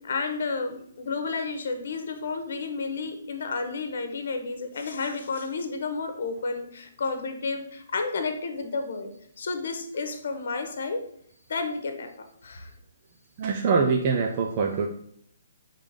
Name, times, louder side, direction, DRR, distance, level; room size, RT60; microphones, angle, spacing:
voice 1, 0.0-9.1 9.4-11.0 11.5-12.1 12.4-12.7, left 4 dB, 55° left, 6 dB, 1.1 m, -31 dB
voice 2, 13.4-14.9, right 5 dB, 25° right, 1 dB, 0.4 m, -24 dB
5.7 x 3.7 x 5.1 m, 0.68 s
hypercardioid pair, 175°, 0 cm